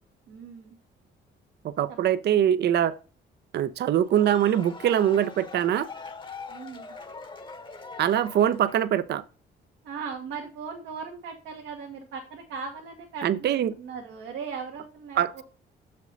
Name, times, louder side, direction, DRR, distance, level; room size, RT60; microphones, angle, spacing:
voice 1, 0.3-0.8 1.9-2.0 6.5-7.0 9.8-15.4, right 5 dB, 85° right, 1.3 m, -38 dB
voice 2, 1.6-3.0 3.5-5.9 8.0-9.2 13.2-13.7 15.2-15.3, right 10 dB, 55° right, 0.5 m, -23 dB
sound 1, 3.9-9.0, left 4 dB, 25° left, 0.9 m, -42 dB
6.6 x 5.1 x 4.0 m
cardioid pair, 90°, 20 cm